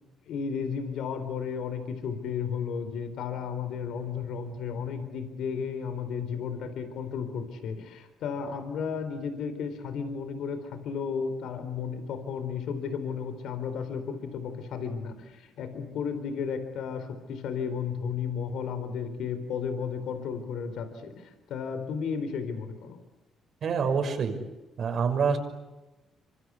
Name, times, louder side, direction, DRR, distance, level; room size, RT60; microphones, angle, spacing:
voice 1, 0.3-23.0, left 6 dB, 80° left, 10 dB, 4.0 m, -33 dB
voice 2, 23.6-24.4 24.8-25.4, right 6 dB, 60° right, 6 dB, 6.1 m, -26 dB
26.5 x 25.5 x 8.5 m, 1.0 s
cardioid pair, 90°, 0 cm